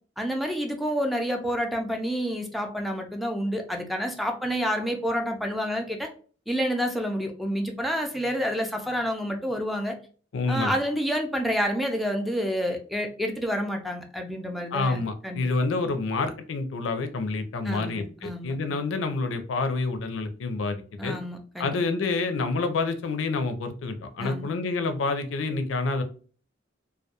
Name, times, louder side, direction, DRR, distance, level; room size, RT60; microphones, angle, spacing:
voice 1, 0.2-6.1 6.5-10.0 10.5-15.5 17.6-18.8 21.0-21.8 24.2-24.5, equal, ahead, 3 dB, 0.3 m, -29 dB
voice 2, 10.3-10.8 14.7-21.2 21.6-26.0, left 3 dB, 75° left, 7 dB, 0.4 m, -28 dB
2.2 x 2.2 x 2.8 m, 0.42 s
head